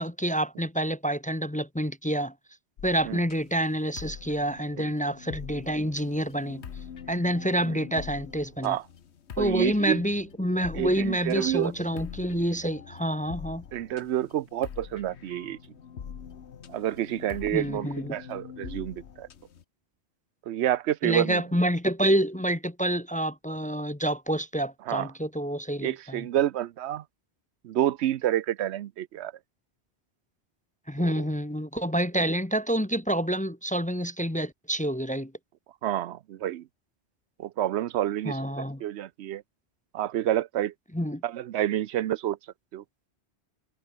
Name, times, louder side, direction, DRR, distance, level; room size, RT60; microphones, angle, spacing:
voice 1, 0.0-2.3 2.8-6.6 7.1-8.8 9.4-13.6 17.5-18.2 21.0-26.3 30.9-35.3 38.2-38.8 40.9-41.2, right 1 dB, 10° left, 0.7 m, -28 dB
sound 1, 2.8-19.6, left 7 dB, 80° left, 1.4 m, -44 dB
voice 2, 9.4-10.0 10.7-11.7 13.7-15.6 16.7-19.3 20.5-21.4 24.9-25.1 25.8-27.0 27.6-29.3 31.0-31.1 35.8-36.6 37.4-38.4 38.8-39.4 39.9-40.7 41.2-42.4 42.7-42.8, right 12 dB, 90° right, 0.9 m, -28 dB
omnidirectional pair, 1.1 m